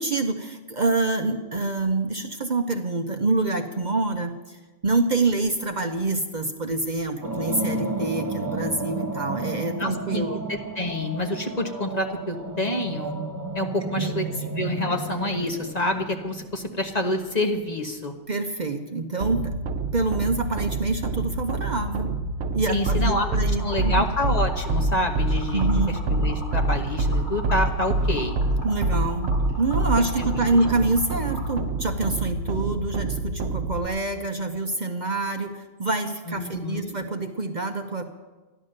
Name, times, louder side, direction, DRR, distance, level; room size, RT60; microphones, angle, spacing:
voice 1, 0.0-4.6 4.8-10.4 13.9-14.2 18.3-19.5 19.9-22.1 22.5-24.0 25.5-26.0 28.6-38.0, right 3 dB, 40° right, 5 dB, 0.9 m, -26 dB
sound 1, 7.2-17.4, right 2 dB, 20° right, 0.9 m, -33 dB
voice 2, 9.8-13.1 13.5-14.3 14.5-18.1 22.7-23.3 23.6-28.3 30.2-30.4 36.3-37.0, left 1 dB, 35° left, 4 dB, 1.2 m, -28 dB
sound 2, 19.2-33.9, right 2 dB, 70° right, 1.1 m, -26 dB
Liquid, 23.6-31.6, equal, 70° left, 4.6 m, -40 dB
13.5 x 11.0 x 6.6 m, 1.3 s
omnidirectional pair, 1.2 m